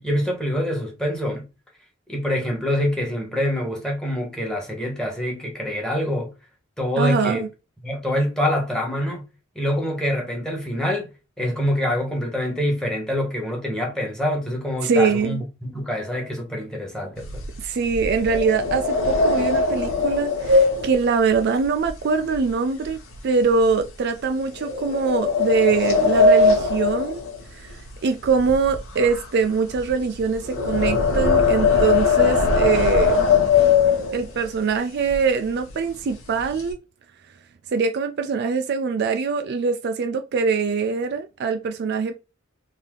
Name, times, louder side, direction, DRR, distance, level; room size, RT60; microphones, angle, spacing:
voice 1, 0.0-1.4 2.1-6.3 6.8-7.5 7.8-9.2 9.5-11.1 11.4-17.4, left 1 dB, 5° left, 1.2 m, -25 dB
voice 2, 7.0-7.5 14.8-15.4 17.6-27.2 27.5-27.7 28.0-33.3 34.1-36.8 37.7-42.2, right 5 dB, 55° right, 0.4 m, -23 dB
sound 1, 17.2-22.5 22.8-23.2 23.7-23.8 24.6-27.9 28.2-34.5 35.1-35.2 35.5-35.7 36.0-36.7, left 4 dB, 85° left, 1.0 m, -20 dB
3.3 x 2.7 x 3.7 m
head